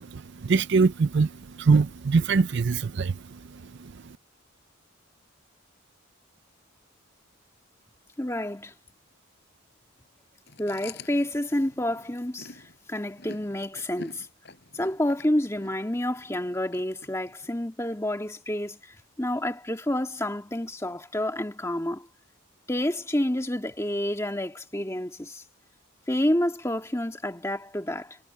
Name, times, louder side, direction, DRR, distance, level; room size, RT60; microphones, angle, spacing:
voice 1, 0.0-4.1, right 4 dB, 55° right, 0.5 m, -24 dB
voice 2, 8.2-8.7 10.6-12.6 12.9-14.3 14.7-22.1 22.7-25.4 26.1-28.2, left 1 dB, 15° left, 1.8 m, -29 dB
Chewing mastication, 10.5-17.5, left 3 dB, 55° left, 5.1 m, -47 dB
head